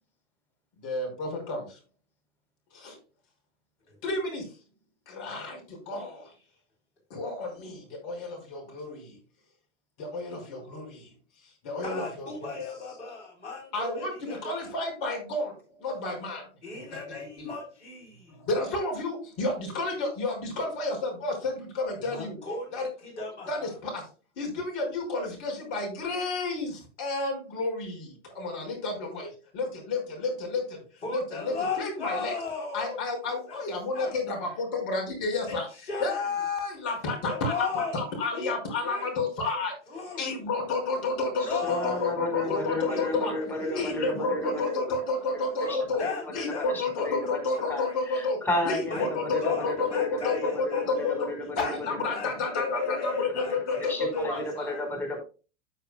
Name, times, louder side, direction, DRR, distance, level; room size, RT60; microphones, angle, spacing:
voice 1, 0.8-1.8 2.7-3.0 4.0-4.6 5.1-6.3 7.1-9.2 10.0-11.1 11.6-12.5 13.7-16.5 16.7-16.8 17.4-17.5 18.3-22.4 22.7-22.9 23.5-24.1 24.4-32.3 32.7-35.7 36.0-39.7 40.2-43.3 43.8-46.0 46.3-51.3 51.6-54.8, left 3 dB, 45° left, 5.8 m, -31 dB
voice 2, 11.8-14.7 16.6-18.3 22.1-23.7 31.0-33.0 33.5-33.6 33.9-34.1 35.4-35.6 35.9-36.2 37.2-37.9 38.3-38.5 38.8-39.1 39.4-39.5 39.9-40.3 41.4-42.1 42.4-43.1 43.7-43.9 44.5-44.9 45.6-46.7 46.9-47.1 47.5-48.0 48.9-49.1 49.4-51.3 52.1-53.9 54.1-54.8, left 4 dB, 70° left, 4.0 m, -36 dB
voice 3, 41.6-44.6 45.3-45.4 45.7-45.8 46.0-46.1 46.7-47.4 47.7-51.7 53.9-55.2, left 1 dB, 5° left, 4.7 m, -32 dB
14.0 x 6.7 x 2.3 m
figure-of-eight pair, 90°, 36 cm